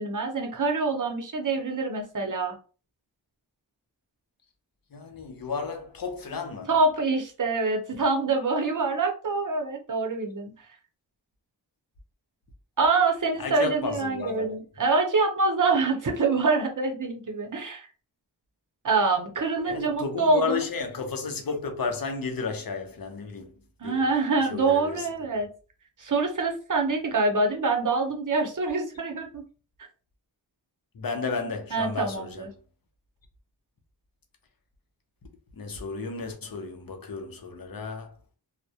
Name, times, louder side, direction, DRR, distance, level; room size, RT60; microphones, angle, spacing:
voice 1, 0.0-2.6 6.7-10.5 12.8-17.9 18.8-20.6 23.8-25.5 26.0-29.4 31.7-32.5, right 3 dB, 45° right, 0.7 m, -25 dB
voice 2, 4.9-6.7 13.4-14.5 19.6-23.5 23.8-24.0 24.4-25.1 30.9-32.4 35.5-38.1, left 4 dB, 50° left, 0.6 m, -32 dB
2.2 x 2.1 x 2.7 m
wide cardioid pair, 45°, 44 cm